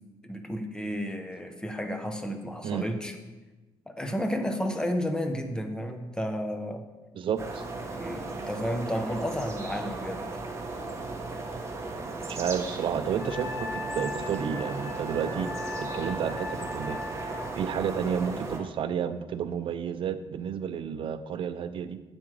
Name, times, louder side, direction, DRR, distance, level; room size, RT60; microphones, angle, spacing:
voice 1, 0.2-3.2 3.9-6.8 7.9-10.3, equal, 10° left, 5 dB, 0.8 m, -32 dB
voice 2, 7.2-7.6 12.3-15.5 15.8-17.0 17.6-22.0, right 7 dB, 60° right, 11 dB, 0.5 m, -31 dB
sound 1, 7.4-18.6, right 3 dB, 30° right, 1.0 m, -36 dB
Wind instrument woodwind instrument, 13.2-17.5, left 2 dB, 75° left, 2.7 m, -38 dB
8.7 x 7.2 x 3.3 m, 1.2 s
cardioid pair, 125°, 10 cm